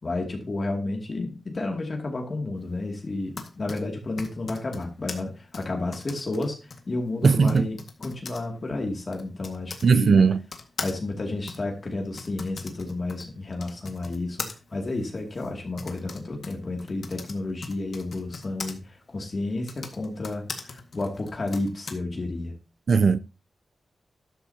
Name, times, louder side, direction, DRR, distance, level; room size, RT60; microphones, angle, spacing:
voice 1, 0.0-10.2 10.8-22.5, left 2 dB, 40° left, 2.5 m, -31 dB
Typing, 3.1-9.9 10.5-18.7 19.5-21.9, left 4 dB, 65° left, 1.8 m, -41 dB
voice 2, 7.2-7.7 9.8-10.4 22.9-23.2, right 5 dB, 65° right, 0.6 m, -18 dB
13.0 x 10.0 x 2.8 m
wide cardioid pair, 95°, 0 cm